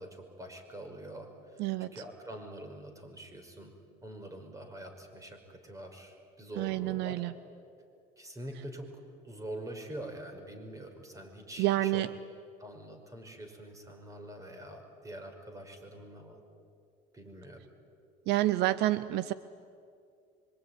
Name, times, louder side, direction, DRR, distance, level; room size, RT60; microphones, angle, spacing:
voice 1, 0.0-1.7 1.9-3.7 4.0-7.2 8.2-12.1 12.6-16.4 17.1-17.6, right 1 dB, 20° right, 5 dB, 5.5 m, -45 dB
voice 2, 1.6-1.9 6.6-7.3 11.6-12.1 18.3-19.3, right 16 dB, 70° right, 15 dB, 0.8 m, -28 dB
25.0 x 24.5 x 9.7 m, 2.4 s
cardioid pair, 110°, 18 cm